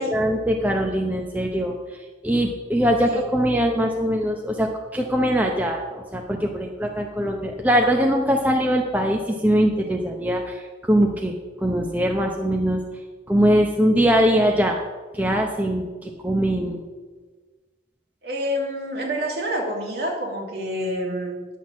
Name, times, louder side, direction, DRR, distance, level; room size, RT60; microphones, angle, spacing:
voice 1, 0.0-12.8 13.3-14.8 15.1-16.8, equal, 10° right, 1 dB, 0.7 m, -22 dB
voice 2, 18.2-21.5, equal, 55° right, -1 dB, 2.5 m, -28 dB
10.0 x 6.3 x 7.3 m, 1.3 s
head